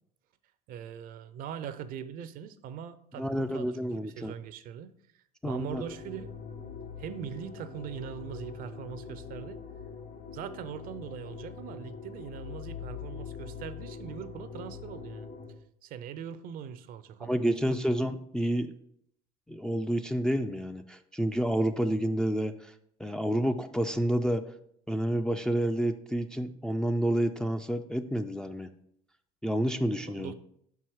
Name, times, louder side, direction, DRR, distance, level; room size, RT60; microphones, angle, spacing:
voice 1, 0.7-4.9 5.4-6.3 7.0-9.6 10.3-15.3 15.8-17.4 30.1-30.3, right 8 dB, 50° right, 13 dB, 0.5 m, -41 dB
voice 2, 3.2-4.3 5.4-5.8 17.2-18.7 19.5-22.7 23.0-24.4 24.9-28.7 29.4-30.3, equal, 5° left, 6 dB, 0.3 m, -29 dB
sound 1, 5.7-15.5, left 6 dB, 70° left, 2.7 m, -43 dB
5.5 x 4.7 x 4.6 m, 0.70 s
hypercardioid pair, 80°, 18 cm